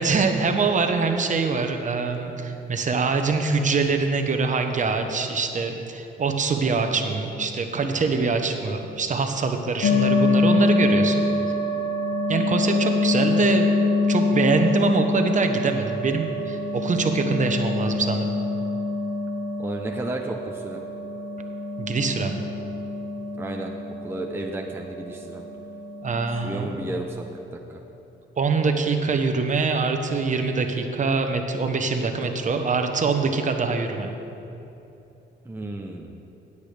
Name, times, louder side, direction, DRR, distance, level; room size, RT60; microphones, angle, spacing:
voice 1, 0.0-11.2 12.3-13.7 14.1-18.3 21.8-22.4 26.0-26.7 28.4-34.1, right 4 dB, 40° right, 5 dB, 1.0 m, -24 dB
sound 1, 9.8-27.1, left 3 dB, 70° left, 1.1 m, -25 dB
voice 2, 19.6-20.8 23.4-23.7 24.0-25.4 26.4-27.2 27.5-27.8 35.4-36.1, right 1 dB, 10° right, 1 dB, 0.7 m, -32 dB
16.5 x 8.4 x 3.4 m, 2.9 s
cardioid pair, 90°, 20 cm